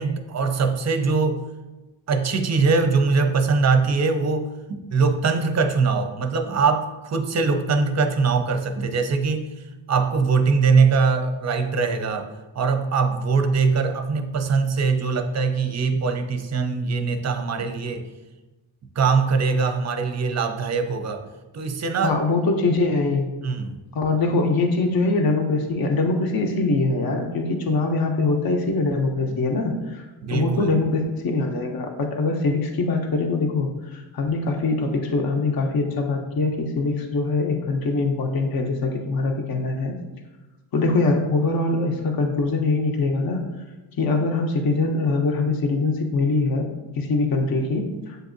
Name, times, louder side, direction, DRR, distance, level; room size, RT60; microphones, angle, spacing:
voice 1, 0.0-1.4 2.1-9.5 9.9-18.1 19.0-21.3 21.5-22.2 23.4-23.8 29.3-29.4 30.2-30.8, right 4 dB, 35° right, 7 dB, 0.5 m, -22 dB
voice 2, 22.0-23.3 23.9-30.1 30.3-40.0 40.7-43.4 44.0-46.7 47.0-48.2, left 3 dB, 50° left, 3 dB, 0.7 m, -23 dB
7.7 x 2.6 x 2.5 m, 1.1 s
cardioid pair, 80°, 47 cm